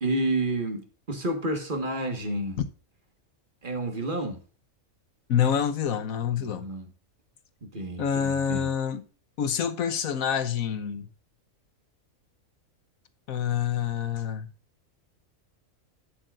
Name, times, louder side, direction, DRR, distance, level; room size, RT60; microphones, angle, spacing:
voice 1, 0.0-2.6 3.6-4.4 6.4-6.8 7.6-8.7, right 1 dB, 40° right, 1.7 m, -30 dB
voice 2, 5.3-6.7 8.0-9.0 9.4-11.1 13.3-14.5, left 8 dB, 85° left, 1.3 m, -27 dB
11.5 x 8.8 x 2.5 m
omnidirectional pair, 1.4 m